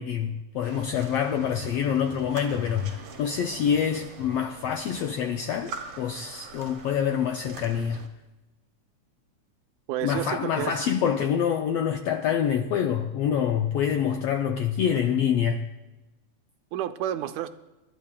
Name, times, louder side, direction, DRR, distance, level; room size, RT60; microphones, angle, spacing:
voice 1, 0.0-8.0 10.0-15.6, left 8 dB, 80° left, 1.4 m, -26 dB
sound 1, 0.6-8.1, right 5 dB, 55° right, 1.8 m, -43 dB
voice 2, 9.9-10.8 16.7-17.5, right 11 dB, 80° right, 1.9 m, -30 dB
28.0 x 12.0 x 2.3 m
omnidirectional pair, 3.5 m